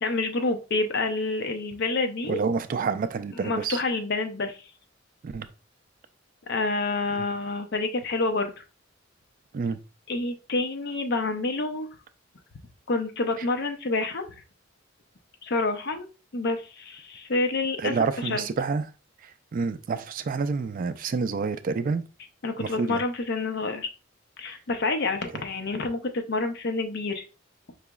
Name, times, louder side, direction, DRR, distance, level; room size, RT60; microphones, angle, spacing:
voice 1, 0.0-2.4 3.4-4.6 6.5-8.6 10.1-11.9 12.9-14.3 15.4-16.1 16.3-17.9 18.3-18.4 22.4-23.9 24.4-27.2, left 3 dB, 60° left, 0.6 m, -28 dB
voice 2, 2.3-3.8 5.2-5.5 7.1-7.3 9.5-9.8 13.4-13.5 17.8-18.9 19.2-22.0 22.6-23.0 24.5-24.6, right 4 dB, 45° right, 0.3 m, -28 dB
4.7 x 2.9 x 2.3 m
head